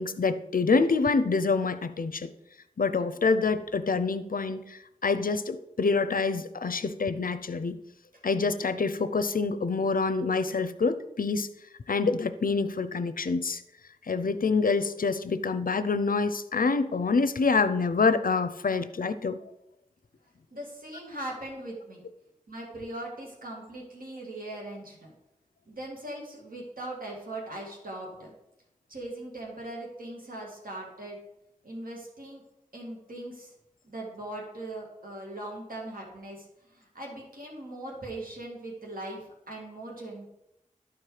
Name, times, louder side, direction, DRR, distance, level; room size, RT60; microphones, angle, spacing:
voice 1, 0.0-2.3 2.8-7.8 8.2-11.5 11.9-13.6 14.1-19.4, left 4 dB, 85° left, 11 dB, 0.6 m, -26 dB
voice 2, 20.5-22.0 22.5-25.1 25.7-28.3 28.9-31.2 31.6-32.4 32.7-33.5 33.8-40.3, right 1 dB, 85° right, -2 dB, 2.2 m, -40 dB
12.0 x 4.6 x 4.9 m, 0.85 s
wide cardioid pair, 45°, 14 cm